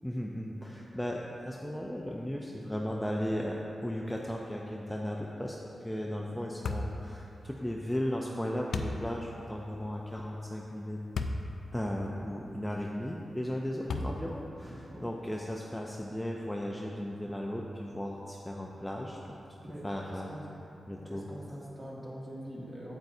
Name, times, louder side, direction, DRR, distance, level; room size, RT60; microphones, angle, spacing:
voice 1, 0.0-5.6 5.8-11.0 11.7-19.4 19.8-20.3 20.9-21.3, equal, 5° left, -2 dB, 0.4 m, -36 dB
sound 1, 6.6-7.0 8.7-9.0 11.1-11.4 12.1-12.2 13.9-14.4, left 3 dB, 80° left, 0.4 m, -33 dB
voice 2, 14.6-15.0 19.6-20.5 21.0-23.0, equal, 25° right, -6 dB, 1.6 m, -44 dB
8.9 x 8.0 x 2.7 m, 3.0 s
wide cardioid pair, 120°, 0 cm